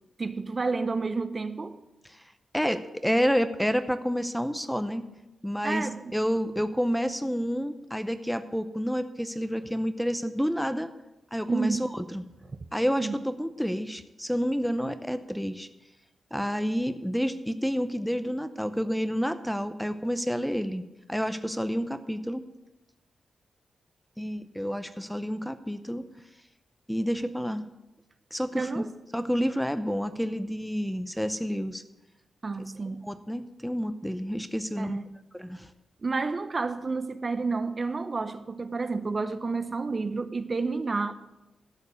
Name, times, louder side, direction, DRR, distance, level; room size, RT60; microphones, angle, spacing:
voice 1, 0.2-1.8 5.6-6.1 11.5-11.9 12.5-12.6 13.0-13.2 28.5-28.9 32.4-33.0 34.8-35.2 36.0-41.1, right 4 dB, 40° right, 0.7 m, -30 dB
voice 2, 2.5-5.1 5.4-10.9 11.3-12.2 12.7-15.7 16.3-22.4 24.2-26.0 26.9-27.7 28.3-28.8 29.1-31.8 33.0-35.0 35.3-35.7, equal, ahead, 0.6 m, -29 dB
12.5 x 5.2 x 8.0 m
cardioid pair, 75°, 0 cm